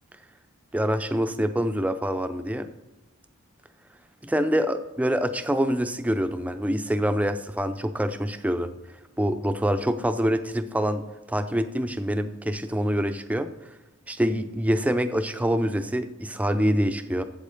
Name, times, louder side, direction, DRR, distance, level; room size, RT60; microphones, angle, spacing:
voice 1, 0.7-2.7 4.2-8.7 9.2-11.0 11.3-13.5 14.1-17.2, equal, 5° right, 9 dB, 0.5 m, -25 dB
8.3 x 8.1 x 6.9 m, 1.1 s
head